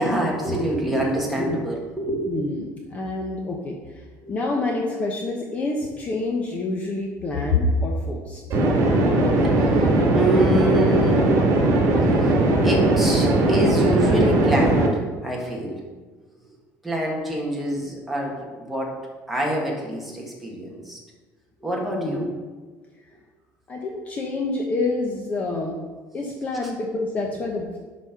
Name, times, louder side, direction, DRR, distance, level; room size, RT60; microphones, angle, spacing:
voice 1, 0.0-2.3 4.2-4.3 9.4-11.4 12.2-15.8 16.8-18.9 19.3-21.0 21.6-22.3 26.6-26.7, right 1 dB, ahead, -3 dB, 1.4 m, -26 dB
voice 2, 2.3-8.6 22.0-22.2 23.7-25.8 26.1-27.8, left 2 dB, 25° left, 0 dB, 0.8 m, -27 dB
sound 1, 8.5-14.9, right 2 dB, 50° right, 1.9 m, -19 dB
11.0 x 4.2 x 5.7 m, 1.3 s
cardioid pair, 180°, 6 cm